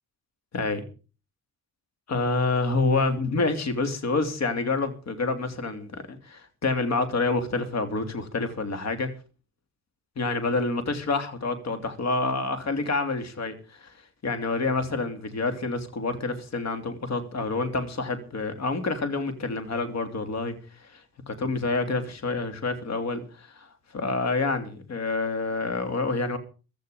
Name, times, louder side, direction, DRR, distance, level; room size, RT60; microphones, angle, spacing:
voice 1, 0.5-0.9 2.1-9.1 10.2-13.9 14.2-26.4, left 3 dB, 65° left, 8 dB, 3.2 m, -28 dB
16.0 x 13.0 x 5.2 m, 0.36 s
cardioid pair, 80°, 29 cm